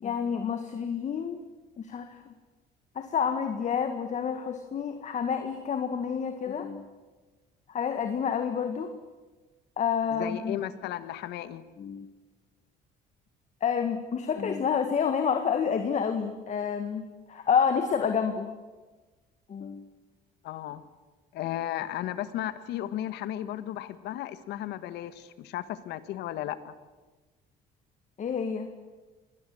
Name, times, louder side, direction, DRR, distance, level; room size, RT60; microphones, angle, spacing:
voice 1, 0.0-1.4 1.8-2.3 3.0-6.9 7.7-8.9 9.8-10.6 11.8-12.1 13.6-18.5 19.5-19.9 28.2-28.7, left 7 dB, 45° left, 7 dB, 1.8 m, -29 dB
voice 2, 10.1-11.6 20.4-20.8 21.3-26.7, left 12 dB, 85° left, 13 dB, 1.5 m, -35 dB
26.5 x 20.0 x 7.8 m, 1.3 s
cardioid pair, 110°, 17 cm